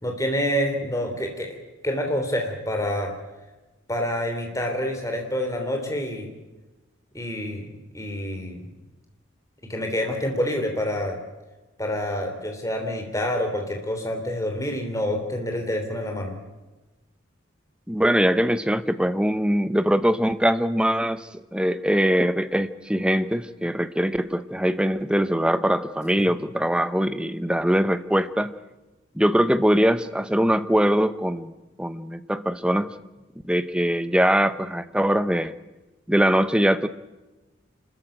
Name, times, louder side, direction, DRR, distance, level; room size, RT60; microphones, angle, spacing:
voice 1, 0.0-1.6 1.8-3.1 3.9-6.3 7.1-7.6 7.9-8.6 9.6-11.2 11.8-16.4 26.2-26.3, equal, 15° left, 3 dB, 3.3 m, -27 dB
voice 2, 17.9-28.6 29.1-31.5 31.8-32.9 33.4-35.5 36.1-36.9, equal, 5° right, 12 dB, 0.7 m, -22 dB
26.5 x 14.0 x 9.1 m, 1.1 s
head